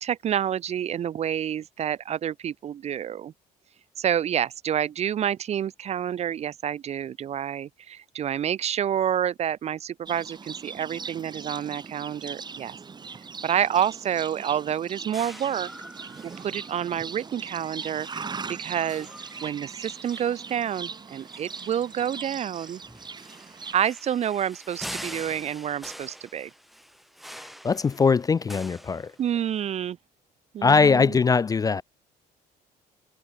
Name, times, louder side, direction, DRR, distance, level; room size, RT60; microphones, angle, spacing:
voice 1, 0.0-3.3 4.0-12.8 13.4-15.7 16.2-19.1 19.4-22.8 23.7-26.5 29.2-30.0 30.5-31.2, right 9 dB, 40° right, 0.4 m, -28 dB
Livestock farm animals working animals, 10.1-23.7, right 5 dB, 25° right, 1.1 m, -40 dB
sound 1, 15.1-29.6, equal, ahead, 1.5 m, -45 dB
voice 2, 27.6-29.1 30.6-31.8, left 5 dB, 20° left, 0.3 m, -21 dB
cardioid pair, 110°, 17 cm